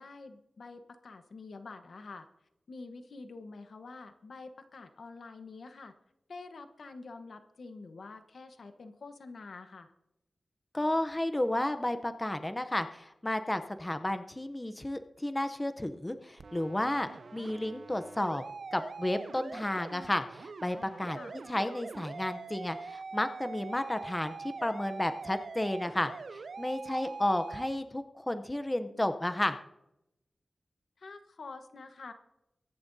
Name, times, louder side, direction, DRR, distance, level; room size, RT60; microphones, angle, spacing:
voice 1, 0.0-2.3 2.7-5.9 6.3-9.9 21.1-21.3 26.9-27.3 31.0-32.1, left 3 dB, 75° left, 7 dB, 1.1 m, -47 dB
voice 2, 10.7-18.4 18.7-21.2 21.5-29.6, left 1 dB, 15° left, 9 dB, 0.7 m, -32 dB
sound 1, 16.4-27.8, right 4 dB, 70° right, 0.6 m, -44 dB
23.0 x 11.0 x 2.7 m, 0.86 s
wide cardioid pair, 125°, 0 cm